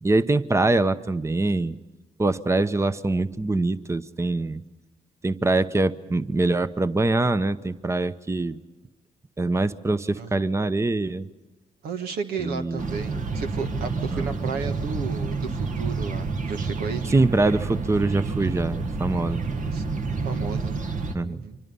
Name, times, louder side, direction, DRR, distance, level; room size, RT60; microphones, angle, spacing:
voice 1, 0.0-1.8 2.2-4.6 5.2-8.6 9.4-11.3 12.4-12.9 14.1-14.3 17.1-19.4 21.1-21.4, right 2 dB, 20° right, 13 dB, 0.8 m, -24 dB
voice 2, 11.8-17.1 19.5-19.8 20.1-20.8 21.2-21.6, right 5 dB, 85° right, 6 dB, 1.5 m, -33 dB
sound 1, 12.8-21.1, right 4 dB, 55° right, 1.5 m, -29 dB
25.5 x 24.5 x 5.5 m, 1.2 s
supercardioid pair, 60°, 15 cm